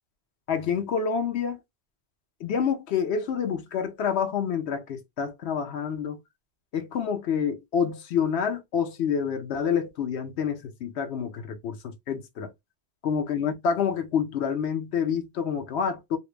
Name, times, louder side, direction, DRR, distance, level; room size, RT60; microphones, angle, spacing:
voice 1, 0.5-1.6 2.4-6.2 6.7-12.5 13.0-16.2, left 7 dB, 80° left, 1.0 m, -28 dB
2.9 x 2.5 x 3.2 m
omnidirectional pair, 1.1 m